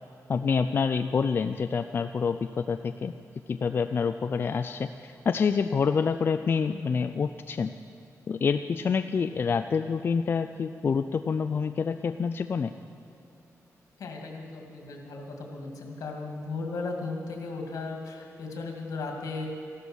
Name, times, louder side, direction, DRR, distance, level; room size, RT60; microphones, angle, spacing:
voice 1, 0.3-3.1 3.5-7.7 8.3-12.7, left 5 dB, 40° left, 9 dB, 0.3 m, -27 dB
voice 2, 14.0-19.5, left 3 dB, 75° left, 2 dB, 2.2 m, -36 dB
14.5 x 12.5 x 6.2 m, 2.7 s
wide cardioid pair, 160°, 6 cm